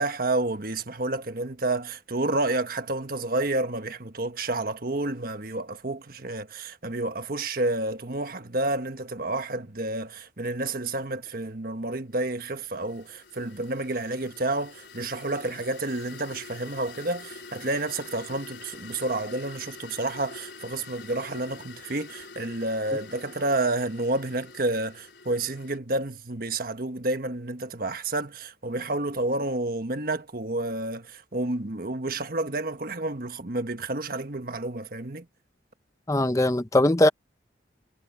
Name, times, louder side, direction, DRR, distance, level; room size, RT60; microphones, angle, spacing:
voice 1, 0.0-35.3, right 2 dB, 50° right, 1.4 m, -30 dB
sound 1, 12.4-25.8, left 4 dB, 70° left, 4.5 m, -46 dB
voice 2, 36.1-37.1, left 1 dB, 15° left, 0.7 m, -20 dB
head